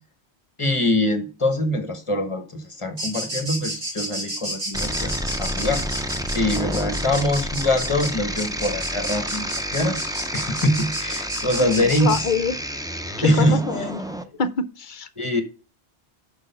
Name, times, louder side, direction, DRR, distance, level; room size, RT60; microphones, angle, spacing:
voice 1, 0.6-5.8 6.3-12.3 13.2-13.6 15.2-15.4, left 1 dB, 30° left, 1.1 m, -23 dB
sound 1, 3.0-12.2, right 1 dB, 65° right, 2.9 m, -31 dB
sound 2, 4.7-14.2, equal, 5° right, 0.4 m, -30 dB
voice 2, 11.6-12.6 13.2-14.0 14.4-15.1, left 5 dB, 55° left, 0.7 m, -26 dB
6.5 x 6.2 x 5.6 m
omnidirectional pair, 1.1 m